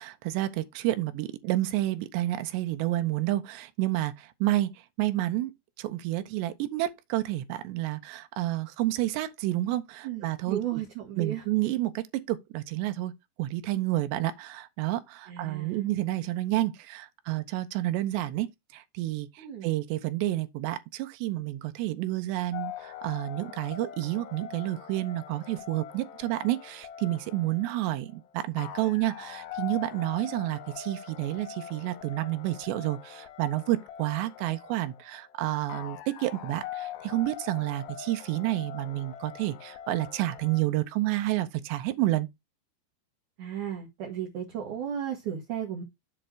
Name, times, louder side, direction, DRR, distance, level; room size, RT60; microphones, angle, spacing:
voice 1, 0.0-5.5 5.8-10.8 11.2-13.1 13.4-18.5 18.7-42.3, right 16 dB, 80° right, 2.7 m, -30 dB
voice 2, 10.0-11.4 15.3-15.8 19.4-19.7 43.4-45.8, right 9 dB, 60° right, 2.1 m, -34 dB
sound 1, 22.5-40.6, left 10 dB, 80° left, 2.8 m, -43 dB
7.9 x 3.2 x 6.2 m
omnidirectional pair, 5.2 m